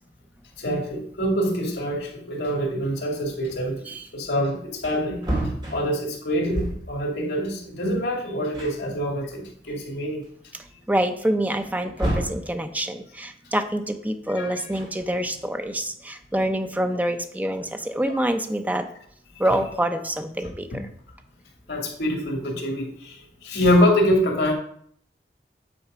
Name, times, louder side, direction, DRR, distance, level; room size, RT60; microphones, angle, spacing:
voice 1, 0.6-5.3 5.7-10.2 14.4-14.5 20.7-20.8 21.7-24.5, equal, 75° left, 1 dB, 2.1 m, -25 dB
Wood, 4.8-7.0 8.1-8.2 8.5-9.7 10.2-10.3 11.6-12.5 14.5-15.4, right 1 dB, 25° right, 2.7 m, -31 dB
voice 2, 10.9-18.9 19.4-20.9, right 1 dB, 10° right, 7 dB, 0.6 m, -26 dB
8.8 x 4.2 x 4.9 m, 0.63 s
head